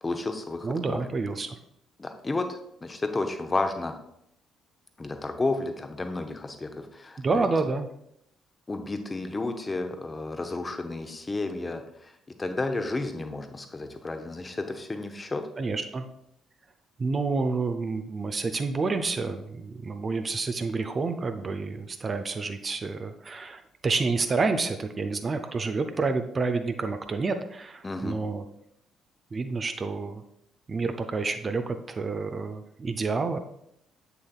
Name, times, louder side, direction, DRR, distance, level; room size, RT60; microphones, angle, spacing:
voice 1, 0.0-1.0 2.0-2.5 2.8-3.9 5.0-7.5 8.7-12.1 12.4-15.4 27.8-28.2, left 2 dB, 25° left, 6 dB, 0.8 m, -32 dB
voice 2, 0.6-1.6 7.2-7.9 15.6-16.1 17.0-28.4 29.3-30.2 30.7-33.4, right 4 dB, 35° right, 8 dB, 0.6 m, -29 dB
7.8 x 6.9 x 2.4 m, 0.76 s
figure-of-eight pair, 45°, 0 cm